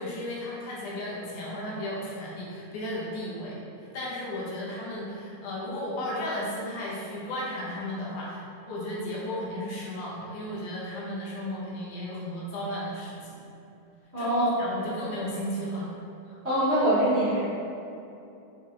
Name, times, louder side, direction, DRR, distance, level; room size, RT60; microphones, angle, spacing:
voice 1, 0.0-13.4 14.2-15.9, left 1 dB, 80° left, -5 dB, 2.7 m, -34 dB
voice 2, 14.1-14.7 16.4-17.4, right 1 dB, 35° right, -13 dB, 1.1 m, -24 dB
6.0 x 4.2 x 3.8 m, 2.7 s
omnidirectional pair, 3.5 m